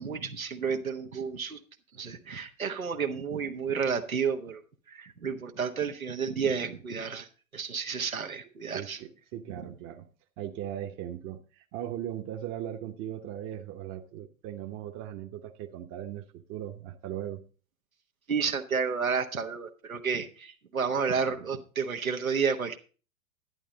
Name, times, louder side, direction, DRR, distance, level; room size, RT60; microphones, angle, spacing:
voice 1, 0.0-1.6 1.9-4.6 4.9-9.0 9.5-9.6 18.3-22.8, right 6 dB, 90° right, 4 dB, 1.3 m, -31 dB
voice 2, 8.7-10.1 10.4-17.4, right 11 dB, 30° right, 5 dB, 1.0 m, -38 dB
11.0 x 10.5 x 4.0 m, 0.36 s
figure-of-eight pair, 105°, 41 cm